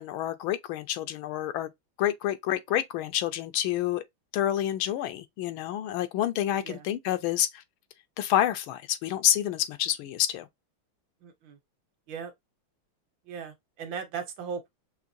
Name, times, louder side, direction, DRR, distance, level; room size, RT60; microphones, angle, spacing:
voice 1, 0.0-1.7 2.0-4.0 4.3-7.6 8.2-10.5, left 12 dB, 85° left, 1.5 m, -28 dB
voice 2, 11.2-11.6 12.1-12.3 13.3-14.7, right 6 dB, 70° right, 1.5 m, -37 dB
5.8 x 2.6 x 2.6 m
omnidirectional pair, 2.2 m